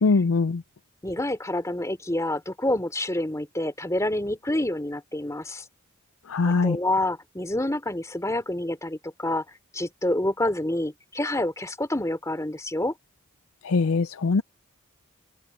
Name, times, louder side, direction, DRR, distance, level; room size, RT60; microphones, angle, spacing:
voice 1, 0.0-0.6 6.3-6.8 13.6-14.4, left 4 dB, 75° left, 0.5 m, -22 dB
voice 2, 1.0-5.6 6.4-9.4 9.7-12.9, left 1 dB, 15° left, 2.9 m, -28 dB
head